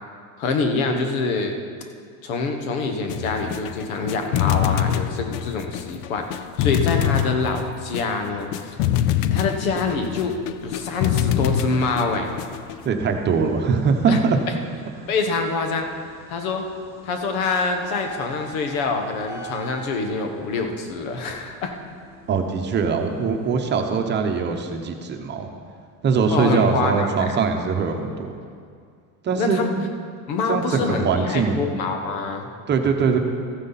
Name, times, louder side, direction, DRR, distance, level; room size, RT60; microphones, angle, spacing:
voice 1, 0.4-1.6 2.2-6.3 6.6-8.8 9.3-10.3 10.6-12.3 14.1-14.2 15.1-15.9 16.3-16.7 17.0-21.7 26.3-27.2 29.4-29.7 30.3-32.5, left 4 dB, 90° left, 5 dB, 1.5 m, -25 dB
sound 1, 3.1-12.9, left 11 dB, 70° left, 0.6 m, -25 dB
sound 2, 10.4-23.6, right 1 dB, 5° right, 1.2 m, -45 dB
voice 2, 12.8-14.4 15.0-15.1 22.3-25.5 26.0-28.3 29.2-29.9 30.5-31.7 32.7-33.2, right 5 dB, 25° right, 4 dB, 0.9 m, -22 dB
14.5 x 9.7 x 4.1 m, 2.2 s
cardioid pair, 145°, 40 cm